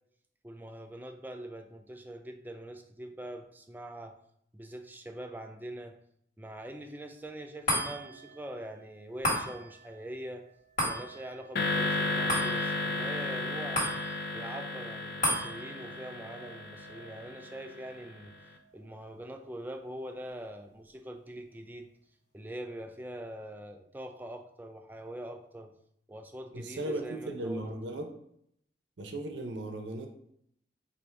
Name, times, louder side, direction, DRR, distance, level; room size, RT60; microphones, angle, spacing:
voice 1, 0.4-4.2 4.5-6.0 6.4-10.4 10.8-13.8 14.3-18.3 18.7-21.9 22.3-25.7 26.1-27.7, right 1 dB, 10° right, 4 dB, 0.3 m, -43 dB
sound 1, 7.7-20.2 20.7-20.8, equal, 45° left, 1.5 m, -37 dB
sound 2, 11.6-17.9, left 2 dB, 60° left, 0.4 m, -33 dB
voice 2, 26.5-28.1 29.0-30.1, right 1 dB, 85° right, 3 dB, 0.7 m, -36 dB
4.5 x 2.6 x 3.3 m, 0.72 s
head